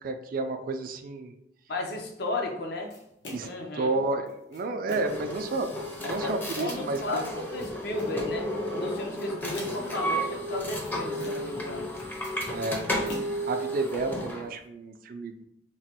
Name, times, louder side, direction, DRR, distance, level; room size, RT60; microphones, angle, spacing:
voice 1, 0.0-1.3 3.3-3.5 3.7-5.7 6.0-7.3 12.5-12.9 13.5-15.4, right 3 dB, 55° right, 7 dB, 0.3 m, -31 dB
voice 2, 1.7-2.9 3.4-3.9 6.0-11.9, left 2 dB, 60° left, 1 dB, 0.5 m, -35 dB
sound 1, 2.9-3.7 4.3-5.3 5.8-6.8 7.4-8.2 8.9-10.0 10.6-11.6 11.9-13.9, left 1 dB, 90° left, 0.9 m, -45 dB
sound 2, 5.0-14.4, equal, 10° left, 0.5 m, -33 dB
3.0 x 2.1 x 2.8 m, 0.79 s
head